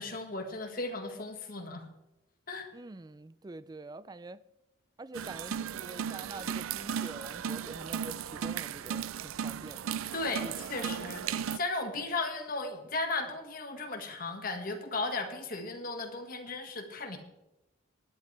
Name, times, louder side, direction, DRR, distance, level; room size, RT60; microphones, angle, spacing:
voice 1, 0.0-1.9 2.5-2.7 10.1-17.2, left 3 dB, 45° left, 1.7 m, -36 dB
voice 2, 2.7-4.4 5.0-10.0 10.4-10.5, right 2 dB, 20° right, 0.3 m, -46 dB
sound 1, 5.1-11.6, right 8 dB, 90° right, 0.4 m, -36 dB
18.0 x 11.5 x 3.3 m
head